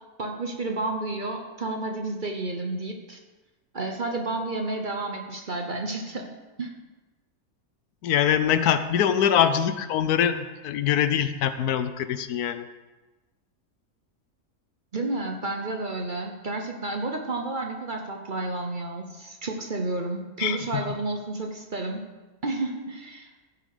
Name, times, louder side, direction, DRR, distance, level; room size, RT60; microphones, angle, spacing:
voice 1, 0.2-3.2 3.7-6.3 6.6-6.7 14.9-22.0 22.4-23.3, right 2 dB, 40° right, 2 dB, 1.0 m, -31 dB
voice 2, 8.0-12.7 20.4-20.8, left 9 dB, 85° left, 11 dB, 1.2 m, -23 dB
15.0 x 5.6 x 4.9 m, 1.2 s
omnidirectional pair, 1.6 m